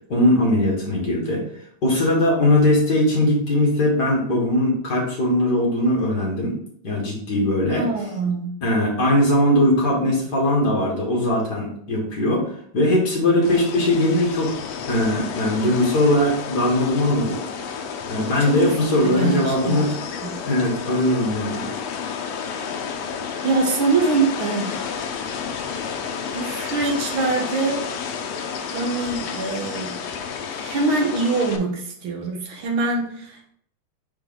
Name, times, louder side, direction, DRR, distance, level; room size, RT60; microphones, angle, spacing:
voice 1, 0.1-1.4 1.8-6.5 6.8-7.9 8.6-14.5 14.9-17.6 18.1-19.9 20.4-21.7, left 1 dB, 40° left, -3 dB, 1.6 m, -20 dB
voice 2, 7.7-8.5 18.4-18.7 19.0-19.9 20.2-20.3 23.4-24.9 26.3-27.8 28.7-29.9 30.6-33.5, right 3 dB, 70° right, 1 dB, 1.2 m, -24 dB
sound 1, 13.4-31.6, left 6 dB, 75° left, 1.4 m, -31 dB
5.8 x 4.6 x 3.8 m, 0.64 s
omnidirectional pair, 3.7 m